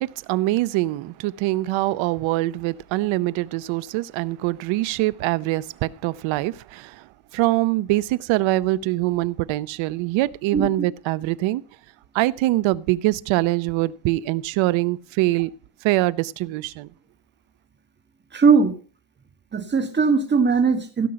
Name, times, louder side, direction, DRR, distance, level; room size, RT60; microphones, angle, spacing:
voice 1, 0.0-7.0 7.3-11.6 12.1-15.5 15.8-16.9, right 18 dB, 70° right, 0.8 m, -23 dB
voice 2, 18.3-18.7 19.5-21.1, right 5 dB, 20° right, 1.6 m, -19 dB
16.5 x 6.3 x 5.8 m
cardioid pair, 150°, 47 cm